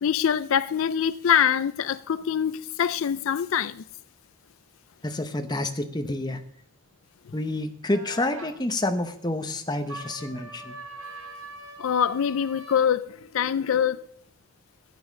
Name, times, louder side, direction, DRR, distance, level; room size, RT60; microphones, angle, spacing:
voice 1, 0.0-3.8 7.3-7.4 11.8-14.1, left 8 dB, 70° left, 0.4 m, -24 dB
voice 2, 5.0-6.4 7.3-10.8, left 1 dB, 20° left, 0.9 m, -28 dB
sound 1, 7.9-8.5 9.9-12.9, right 1 dB, 85° right, 4.3 m, -42 dB
12.5 x 8.9 x 6.2 m
head